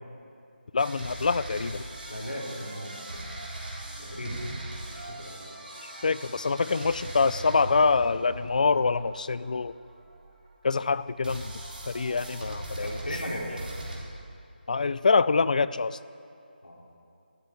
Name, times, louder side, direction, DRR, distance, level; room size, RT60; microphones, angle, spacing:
voice 1, 0.7-1.8 6.0-9.7 10.6-11.5 11.9-13.0 14.7-16.0, left 4 dB, 50° left, 17 dB, 0.4 m, -25 dB
sound 1, 0.8-10.7 11.2-14.0, right 1 dB, 65° right, 4.1 m, -40 dB
voice 2, 2.1-3.0 4.0-4.6 4.9-5.4 12.8-13.6 16.6-16.8, equal, 85° left, -4 dB, 4.2 m, -36 dB
13.0 x 8.7 x 9.1 m, 2.6 s
figure-of-eight pair, 165°, 6 cm